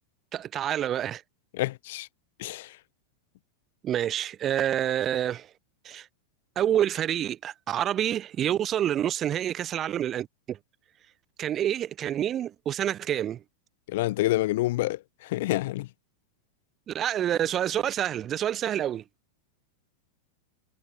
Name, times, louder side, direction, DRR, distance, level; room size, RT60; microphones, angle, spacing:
voice 1, 0.3-1.2 3.8-5.5 5.8-6.1 6.6-10.6 11.4-13.4 16.9-19.0, right 10 dB, 30° right, 0.9 m, -28 dB
voice 2, 1.5-2.1 2.4-2.7 13.9-15.9, left 17 dB, 55° left, 0.5 m, -28 dB
figure-of-eight pair, 90°, 0 cm